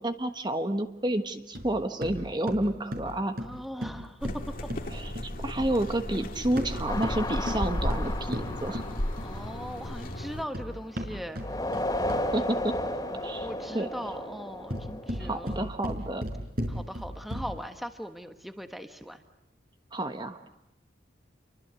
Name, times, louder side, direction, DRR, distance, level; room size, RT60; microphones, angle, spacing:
voice 1, 0.0-3.4 4.9-8.8 12.3-12.8 13.2-13.5 13.7-13.9 15.2-16.3 19.9-20.4, right 1 dB, 25° right, 8 dB, 1.3 m, -30 dB
sound 1, 1.5-5.7 6.4-9.5 10.2-12.4 14.5-17.7, equal, 55° right, 5.1 m, -36 dB
voice 2, 3.4-4.4 9.2-11.4 13.4-15.6 16.7-19.2, equal, ahead, 7 dB, 1.3 m, -39 dB
sound 2, 4.2-10.4, left 1 dB, 50° left, 2.0 m, -34 dB
sound 3, 6.9-10.9 11.4-15.5, left 1 dB, 20° left, 2.9 m, -34 dB
29.5 x 24.0 x 8.3 m, 0.87 s
head